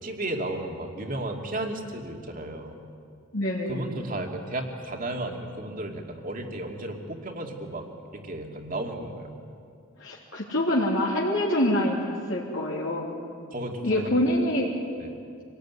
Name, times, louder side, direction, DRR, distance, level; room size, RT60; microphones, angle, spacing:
voice 1, 0.0-2.8 3.7-9.3 13.5-14.4 15.0-15.1, right 1 dB, 40° right, 3 dB, 2.6 m, -34 dB
voice 2, 3.3-3.8 10.0-13.1 13.8-15.0, left 1 dB, 65° left, -4 dB, 3.0 m, -26 dB
26.0 x 18.5 x 9.7 m, 2.4 s
head